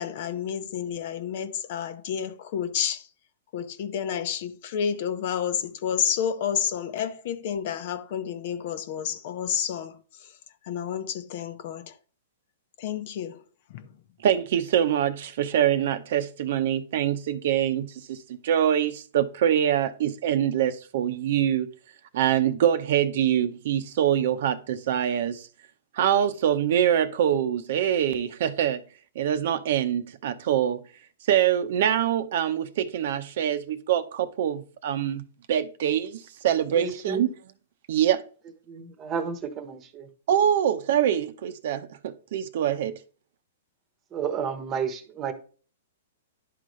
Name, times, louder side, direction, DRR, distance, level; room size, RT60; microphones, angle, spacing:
voice 1, 0.0-3.1 3.5-10.4 10.6-12.0 12.8-13.4 13.7-14.0, left 8 dB, 55° left, 0.8 m, -30 dB
voice 2, 14.2-21.7 22.1-25.5 25.9-28.8 29.1-30.8 31.3-37.3 37.9-38.2 40.3-43.0, right 10 dB, 60° right, 0.7 m, -24 dB
voice 3, 36.7-37.3 38.7-40.1 44.1-45.3, right 6 dB, 25° right, 1.1 m, -31 dB
11.0 x 3.9 x 3.2 m
hypercardioid pair, 140°, 0 cm